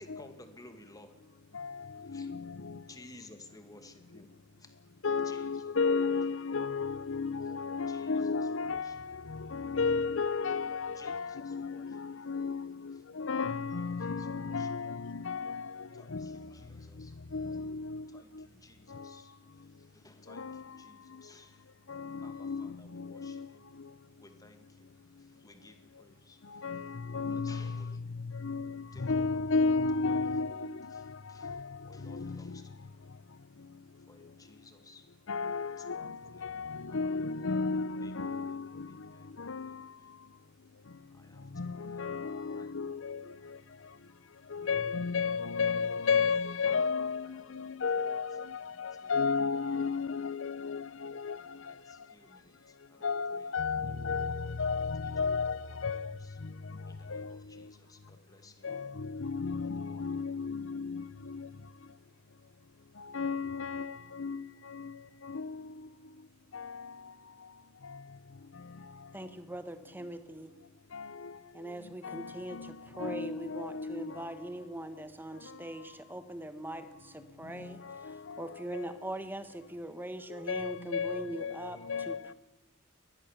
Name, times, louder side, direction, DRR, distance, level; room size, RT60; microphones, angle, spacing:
voice 1, 0.0-1.4 2.0-2.3 2.9-4.3 4.6-4.8 5.2-5.7 7.8-8.4 8.7-9.0 10.9-12.2 13.8-14.7 15.9-17.3 18.1-21.7 22.2-23.6 24.2-26.9 27.1-28.1 28.9-29.7 30.1-30.2 30.9-31.0 31.3-33.5 34.0-35.1 35.7-37.2 38.0-38.3 38.6-40.0 41.1-44.8 46.8-46.9 47.2-47.4 47.7-47.8 48.7-49.1 51.4-53.5 54.0-54.9 55.3-55.8 56.0-56.3 56.9-58.8 59.5-60.2, left 2 dB, 20° left, 2.1 m, -58 dB
voice 2, 1.5-2.8 5.0-16.5 17.0-18.5 18.9-19.2 20.3-21.2 21.9-23.5 23.7-23.9 26.4-32.6 35.3-39.9 41.4-43.6 44.5-52.0 53.0-57.7 58.6-61.5 63.0-65.9 66.5-67.1 67.8-68.0 68.5-69.1 70.9-74.3 75.3-75.7 77.4-79.0 80.3-82.3, left 4 dB, 70° left, 0.7 m, -34 dB
voice 3, 69.1-70.5 71.5-77.8 78.0-81.8 82.1-82.3, right 1 dB, 10° right, 1.4 m, -41 dB
21.5 x 19.0 x 7.2 m
head